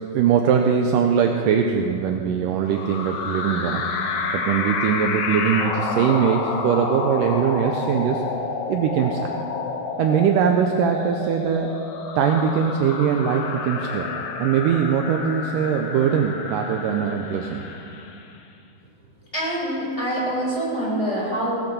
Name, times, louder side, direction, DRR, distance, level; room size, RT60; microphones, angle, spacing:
voice 1, 0.1-3.9 4.3-8.2 8.7-9.4 10.0-11.7 12.2-14.1 14.4-17.6, right 7 dB, 80° right, 4 dB, 2.1 m, -21 dB
sound 1, 2.6-18.3, left 4 dB, 65° left, 2.1 m, -29 dB
voice 2, 19.3-21.6, right 1 dB, 10° left, -6 dB, 3.7 m, -25 dB
18.0 x 7.9 x 6.9 m, 2.4 s
omnidirectional pair, 4.2 m